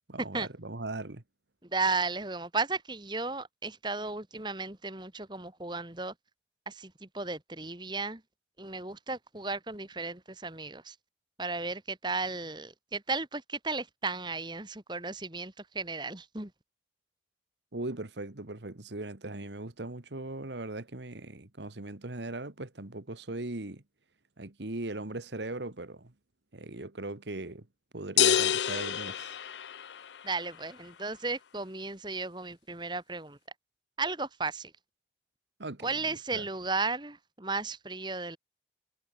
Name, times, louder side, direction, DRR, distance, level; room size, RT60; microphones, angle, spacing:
voice 1, 0.1-1.2 17.7-23.8 24.4-26.1 26.5-27.7 27.9-29.4 35.6-36.5, right 2 dB, 90° right, 1.8 m, -39 dB
voice 2, 1.7-6.1 6.7-8.2 8.6-11.0 11.4-16.5 30.2-33.4 34.0-34.7 35.8-38.4, right 3 dB, 25° right, 2.1 m, -34 dB
sound 1, 28.2-30.2, left 9 dB, 90° left, 0.6 m, -27 dB
head